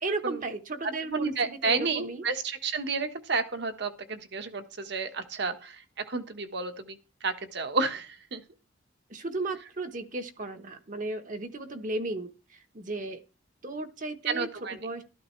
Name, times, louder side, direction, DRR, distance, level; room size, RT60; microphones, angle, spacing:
voice 1, 0.0-2.2 9.1-12.3 12.7-13.2 13.6-14.5 14.8-15.0, right 2 dB, 40° right, 8 dB, 1.1 m, -35 dB
voice 2, 0.8-8.4 14.3-14.8, right 4 dB, 60° right, 8 dB, 1.3 m, -31 dB
13.0 x 12.0 x 3.2 m, 0.33 s
head